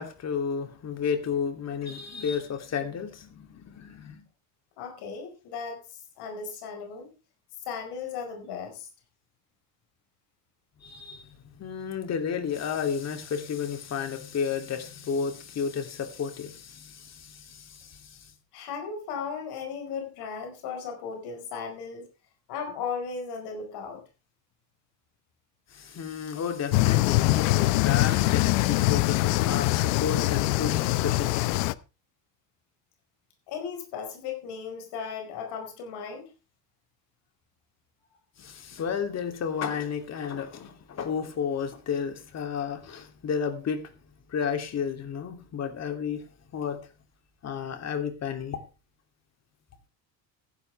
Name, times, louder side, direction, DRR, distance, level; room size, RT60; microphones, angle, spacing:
voice 1, 0.0-4.2 10.8-18.3 25.7-31.5 38.4-43.8 44.3-46.2 46.5-46.8 47.4-48.6, left 7 dB, 40° left, 2.9 m, -32 dB
voice 2, 4.8-7.1 7.6-8.9 18.5-22.1 22.5-24.0 33.5-36.3, left 6 dB, 65° left, 5.1 m, -36 dB
sound 1, 26.7-31.7, left 19 dB, 85° left, 0.8 m, -23 dB
15.0 x 11.5 x 3.4 m
cardioid pair, 135°, 42 cm